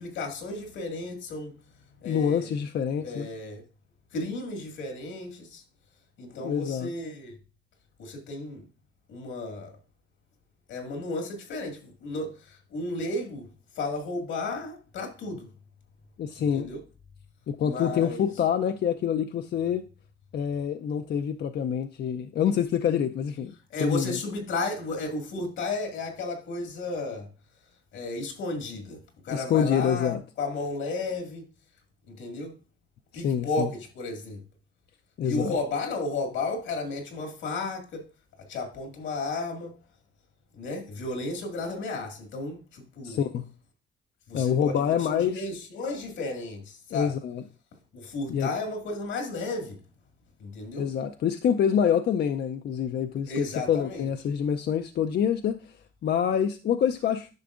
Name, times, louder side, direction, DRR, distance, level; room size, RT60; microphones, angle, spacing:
voice 1, 0.0-1.6 2.0-2.5 3.0-3.6 4.1-5.6 6.2-7.3 8.0-8.6 9.1-9.8 10.7-13.5 13.7-15.5 16.4-16.8 17.6-18.3 23.7-27.3 27.9-31.5 32.1-32.6 33.1-34.4 35.2-38.1 38.5-39.8 40.5-43.2 44.3-47.2 47.9-49.8 50.4-50.9 53.3-54.1, left 2 dB, 85° left, 2.1 m, -33 dB
voice 2, 2.0-3.3 6.4-6.9 16.2-16.7 17.5-19.8 20.3-24.2 29.3-30.2 33.1-33.7 35.2-35.5 43.0-43.5 44.3-45.4 46.9-47.4 48.3-48.5 50.8-55.8 56.0-57.3, left 8 dB, 60° left, 0.5 m, -26 dB
10.5 x 5.8 x 2.5 m
cardioid pair, 90°, 20 cm